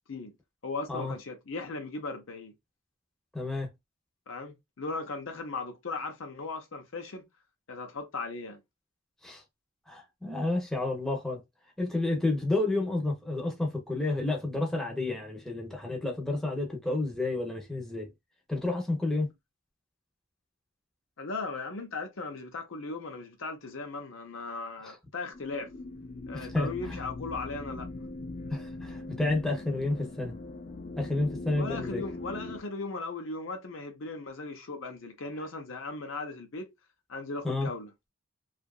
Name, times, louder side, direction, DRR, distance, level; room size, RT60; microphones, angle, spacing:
voice 1, 0.6-2.5 4.3-7.3 7.7-8.6 21.2-25.7 26.3-27.9 31.6-36.7 37.1-37.9, left 3 dB, 65° left, 0.7 m, -37 dB
voice 2, 3.3-3.7 9.2-9.4 9.9-11.4 11.8-18.1 18.5-19.3 24.8-24.9 26.3-27.0 28.5-30.3 31.0-32.0 37.4-37.7, left 2 dB, ahead, 0.7 m, -30 dB
sound 1, 25.3-32.6, left 2 dB, 35° left, 0.4 m, -41 dB
2.8 x 2.4 x 2.3 m
head